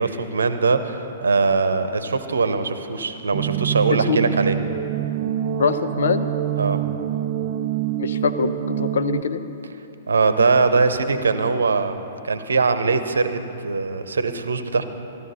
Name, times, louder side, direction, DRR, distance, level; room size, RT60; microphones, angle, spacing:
voice 1, 0.0-4.5 6.6-6.8 10.1-11.9 12.2-14.8, right 4 dB, 70° right, 10 dB, 0.9 m, -21 dB
sound 1, 3.3-9.2, right 11 dB, 40° right, 0.4 m, -25 dB
voice 2, 5.6-6.6 8.0-9.4, left 6 dB, 60° left, 10 dB, 0.7 m, -23 dB
15.0 x 13.0 x 5.6 m, 2.9 s
figure-of-eight pair, 115°, 0 cm